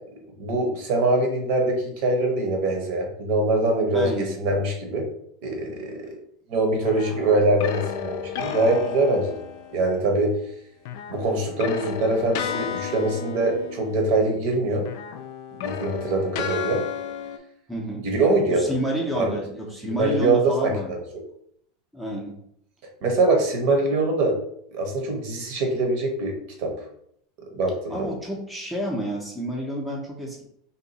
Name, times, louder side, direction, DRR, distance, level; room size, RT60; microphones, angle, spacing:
voice 1, 0.4-5.1 5.4-6.2 6.5-9.3 9.7-10.3 11.1-14.8 15.6-16.8 18.0-18.7 19.1-19.3 19.9-21.0 23.0-24.3 24.7-26.7 27.6-28.1, right 2 dB, 50° right, 2 dB, 0.8 m, -23 dB
voice 2, 3.9-4.3 17.7-18.1 18.5-20.9 21.9-22.4 27.9-30.4, equal, ahead, -3 dB, 0.5 m, -29 dB
sound 1, 6.8-9.9 10.8-14.5 14.8-17.4, left 8 dB, 65° left, 0.3 m, -33 dB
2.7 x 2.3 x 4.0 m, 0.70 s
supercardioid pair, 155°, 2 cm